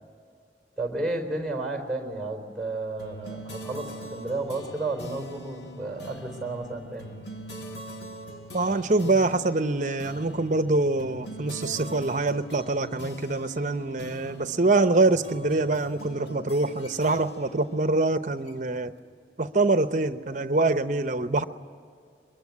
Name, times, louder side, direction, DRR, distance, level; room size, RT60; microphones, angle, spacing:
voice 1, 0.8-7.2, right 2 dB, ahead, 4.0 m, -32 dB
sound 1, 3.0-18.9, equal, 75° left, 1.7 m, -42 dB
voice 2, 8.5-18.9 19.4-21.4, right 2 dB, 45° right, 0.8 m, -25 dB
23.0 x 22.5 x 9.6 m
head